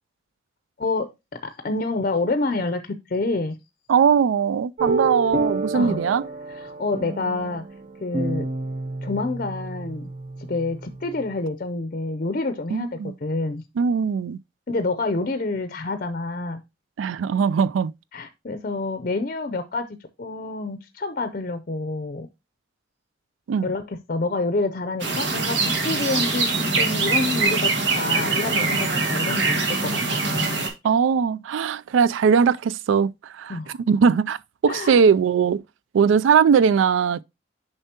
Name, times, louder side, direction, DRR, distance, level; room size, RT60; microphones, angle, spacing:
voice 1, 0.8-3.6 5.7-6.0 6.5-7.6 8.0-8.5 9.0-10.1 10.5-13.6 14.7-16.6 18.1-19.9 20.2-22.3 23.6-30.5 33.5-33.8 34.7-35.0, left 3 dB, 45° left, 0.5 m, -28 dB
voice 2, 3.9-6.2 12.7-13.1 13.8-14.4 17.0-17.9 23.5-23.7 30.8-33.1 33.4-33.5 33.9-34.4 34.6-35.6 35.9-37.2, right 6 dB, 90° right, 0.3 m, -20 dB
sound 1, 4.8-11.3, right 3 dB, 45° right, 0.8 m, -29 dB
sound 2, 25.0-30.7, right 3 dB, 75° right, 1.7 m, -23 dB
6.8 x 5.5 x 2.8 m
head